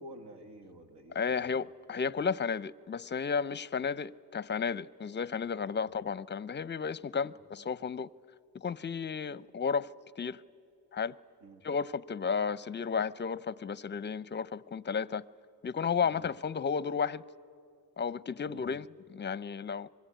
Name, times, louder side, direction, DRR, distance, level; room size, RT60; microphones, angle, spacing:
voice 1, 0.0-1.7 7.2-7.3 11.4-11.6 16.0-16.2 18.4-18.7, right 1 dB, 85° right, 2.1 m, -50 dB
voice 2, 1.1-8.1 8.5-9.9 10.2-10.4 10.9-11.1 11.6-15.2 15.6-17.2 18.0-19.9, left 6 dB, 25° left, 0.6 m, -33 dB
25.0 x 21.5 x 9.2 m
cardioid pair, 75°, 41 cm